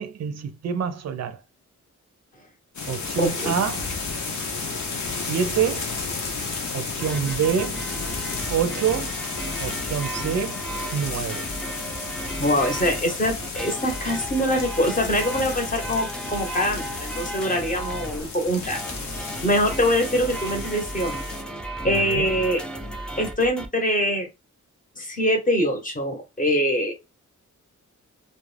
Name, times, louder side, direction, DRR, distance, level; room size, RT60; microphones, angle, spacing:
voice 1, 0.0-1.4 2.9-3.9 5.2-5.9 6.7-7.9 8.5-9.2 9.6-10.6 10.9-11.5 21.8-22.3, right 7 dB, 55° right, 0.5 m, -26 dB
sound 1, 2.7-21.4, left 4 dB, 70° left, 0.7 m, -33 dB
voice 2, 3.2-3.5 12.4-18.8 19.1-21.3 21.8-22.6 23.2-24.3 25.0-26.9, equal, 25° left, 0.8 m, -24 dB
sound 2, 7.0-23.7, right 1 dB, 5° left, 0.3 m, -35 dB
2.4 x 2.1 x 3.1 m
wide cardioid pair, 155°, 31 cm